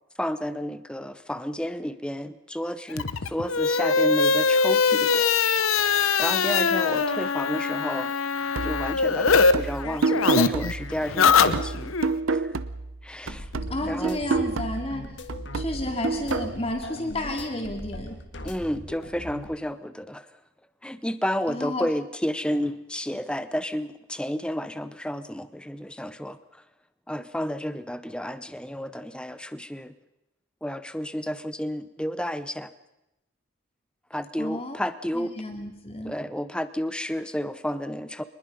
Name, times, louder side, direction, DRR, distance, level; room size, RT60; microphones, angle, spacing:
voice 1, 0.2-5.3 5.8-8.1 8.6-11.9 12.3-12.5 13.0-13.5 13.9-14.2 18.4-20.3 20.8-26.4 27.1-29.9 30.6-32.7 34.1-35.3 36.0-38.2, equal, 5° left, 13 dB, 0.7 m, -31 dB
sound 1, 2.9-9.5 9.8-12.1, left 5 dB, 85° left, 0.9 m, -22 dB
sound 2, 8.5-13.0 13.3-16.5, right 3 dB, 80° right, 0.8 m, -29 dB
sound 3, 13.2-19.6, left 1 dB, 60° left, 1.7 m, -40 dB
voice 2, 13.7-15.0 15.5-18.1 21.5-21.9 34.4-34.8 35.1-36.1, left 1 dB, 30° left, 3 dB, 2.5 m, -31 dB
24.0 x 20.5 x 5.5 m, 0.91 s
head